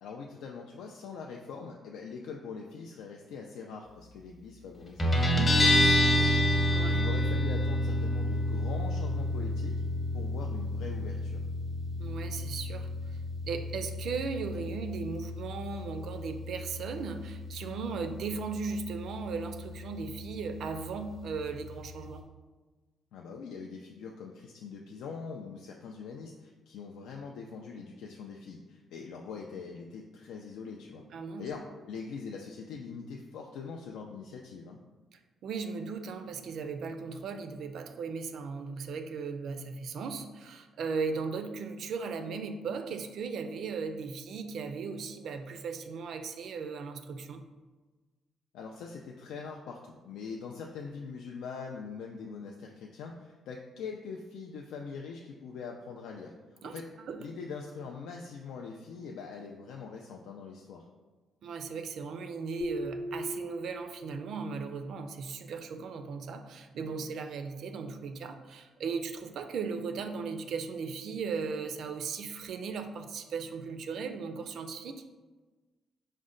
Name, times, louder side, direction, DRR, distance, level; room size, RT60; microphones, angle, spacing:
voice 1, 0.0-9.8 10.1-11.4 23.1-31.1 31.4-34.8 48.5-56.9 57.2-60.9, left 5 dB, 90° left, 0 dB, 0.3 m, -43 dB
Guitar, 5.0-22.2, left 1 dB, 25° left, 0.8 m, -30 dB
voice 2, 6.7-7.0 12.0-13.2 13.4-22.2 31.1-31.5 35.4-47.4 56.6-56.8 57.1-57.2 61.4-75.0, right 5 dB, 65° right, 8 dB, 0.3 m, -37 dB
sound 1, 62.6-64.3, left 1 dB, 70° left, 0.7 m, -38 dB
5.1 x 2.1 x 3.7 m, 1.3 s
cardioid pair, 115°, 0 cm